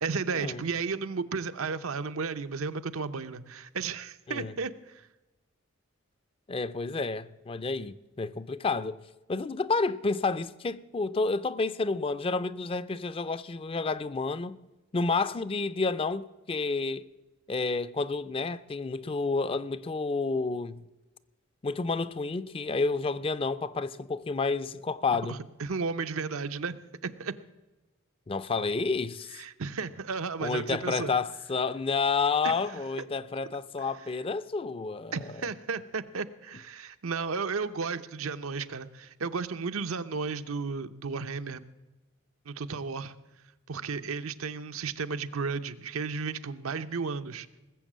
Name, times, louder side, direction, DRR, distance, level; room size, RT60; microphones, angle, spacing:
voice 1, 0.0-5.1 25.3-26.8 27.0-27.3 29.4-31.1 32.4-32.5 35.1-41.6 42.5-43.1 43.7-47.5, right 5 dB, 85° right, 0.7 m, -33 dB
voice 2, 6.5-9.0 9.3-14.6 14.9-17.1 17.5-20.8 21.6-25.4 28.3-29.4 30.4-35.2, left 4 dB, 25° left, 0.4 m, -30 dB
19.5 x 7.4 x 7.4 m
head